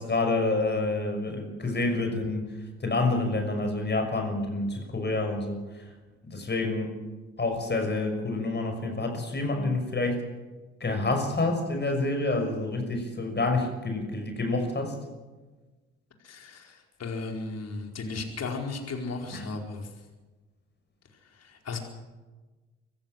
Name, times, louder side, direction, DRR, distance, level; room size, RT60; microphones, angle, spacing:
voice 1, 0.0-2.5 2.8-5.6 6.3-6.9 7.4-10.2 10.8-15.0 19.3-19.5, left 2 dB, 30° left, 4 dB, 6.1 m, -28 dB
voice 2, 16.2-16.7 17.0-19.8 21.7-21.8, left 3 dB, 50° left, 3 dB, 4.7 m, -35 dB
24.5 x 15.0 x 7.6 m, 1.2 s
hypercardioid pair, 50°, 33 cm